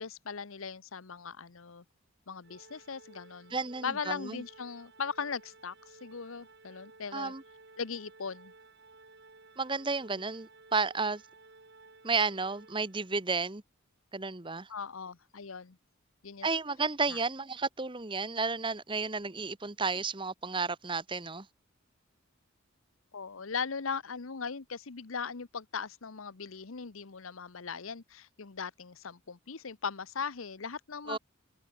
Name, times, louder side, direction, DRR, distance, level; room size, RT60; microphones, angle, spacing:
voice 1, 0.0-1.8 2.3-3.6 3.8-7.3 7.8-8.5 14.7-15.8 16.2-16.5 17.1-17.2 23.1-31.2, left 5 dB, 80° left, 1.0 m, -39 dB
Organ, 2.4-13.3, right 3 dB, 55° right, 3.4 m, -57 dB
voice 2, 3.5-4.4 7.1-7.4 9.6-11.2 12.0-13.6 14.1-14.7 16.4-21.5 31.1-31.2, right 4 dB, 25° right, 1.3 m, -32 dB
head